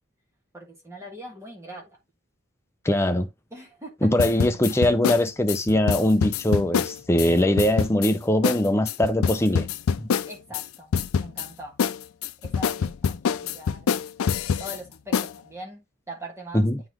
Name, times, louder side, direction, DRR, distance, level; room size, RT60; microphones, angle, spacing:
voice 1, 0.5-2.0 3.5-4.5 4.9-5.3 10.2-11.8 12.4-13.9 14.6-16.7, right 1 dB, 15° right, 1.4 m, -42 dB
voice 2, 2.8-3.3 4.0-9.7 10.0-10.1 16.5-16.8, left 1 dB, 10° left, 0.5 m, -21 dB
sound 1, 4.2-7.3 7.6-8.1 8.4-8.6 8.9-10.6 10.9-11.5 11.8-14.8 15.1-15.3, left 6 dB, 85° left, 0.4 m, -25 dB
9.0 x 3.9 x 3.0 m
head